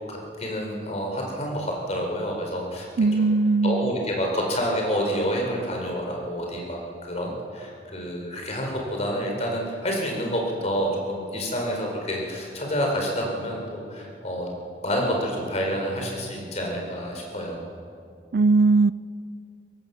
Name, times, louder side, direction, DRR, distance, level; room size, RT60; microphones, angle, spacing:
voice 1, 0.1-2.9 3.6-14.5 14.8-17.6, equal, 40° left, 0 dB, 4.4 m, -28 dB
voice 2, 3.0-3.9 18.3-18.9, right 3 dB, 60° right, 18 dB, 0.4 m, -19 dB
23.5 x 17.5 x 7.0 m, 2.4 s
head